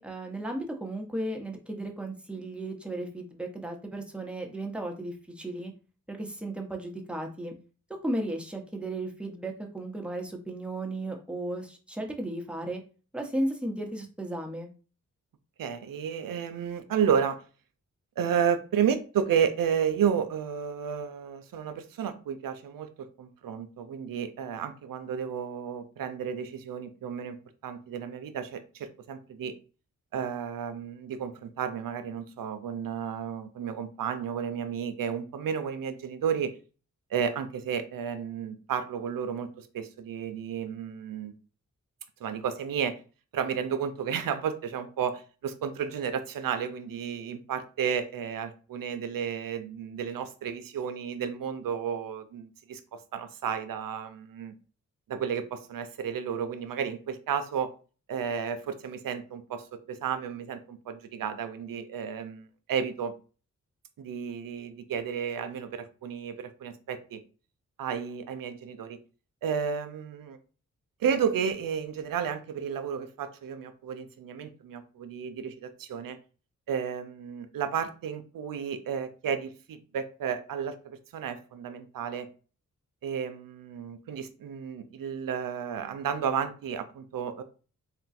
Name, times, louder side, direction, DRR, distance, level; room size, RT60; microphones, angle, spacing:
voice 1, 0.0-5.7 6.1-7.5 8.0-12.8 13.1-14.7, right 1 dB, 5° right, 1 dB, 1.0 m, -35 dB
voice 2, 15.6-17.4 18.2-27.4 27.6-29.5 30.1-36.5 37.1-41.3 42.2-42.9 43.3-54.5 55.1-57.7 58.1-63.1 64.0-67.2 67.8-69.0 69.4-70.4 71.0-76.2 76.7-82.3 83.0-87.4, right 7 dB, 80° right, 10 dB, 0.6 m, -32 dB
3.6 x 2.3 x 4.2 m, 0.36 s
cardioid pair, 65°, 33 cm